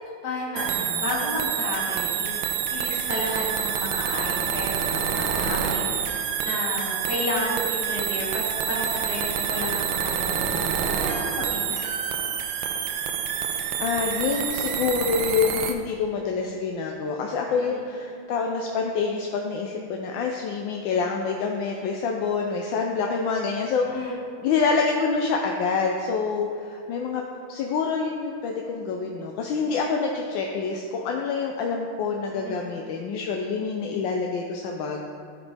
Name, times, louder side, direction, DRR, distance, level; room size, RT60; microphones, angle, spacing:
voice 1, 0.2-11.8 17.6-17.9 23.9-24.2 32.4-32.7, left 1 dB, 50° left, -6 dB, 2.5 m, -32 dB
sound 1, 0.6-15.7, right 8 dB, 75° right, 1.3 m, -27 dB
voice 2, 13.4-27.2 27.5-35.1, left 5 dB, 70° left, 1 dB, 1.2 m, -27 dB
15.0 x 5.2 x 3.4 m, 2.4 s
omnidirectional pair, 2.4 m